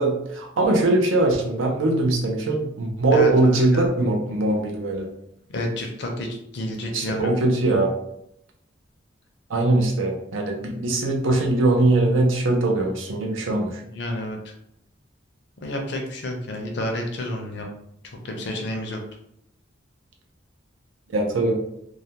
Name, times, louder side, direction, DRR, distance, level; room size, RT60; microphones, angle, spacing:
voice 1, 0.0-5.1 6.9-7.9 9.5-13.8 21.1-21.6, right 2 dB, 90° right, 1 dB, 0.5 m, -21 dB
voice 2, 3.1-3.9 5.5-7.3 13.9-14.4 15.6-17.7 18.1-19.0, left 1 dB, 60° left, 2 dB, 0.5 m, -29 dB
2.3 x 2.1 x 2.8 m, 0.74 s
head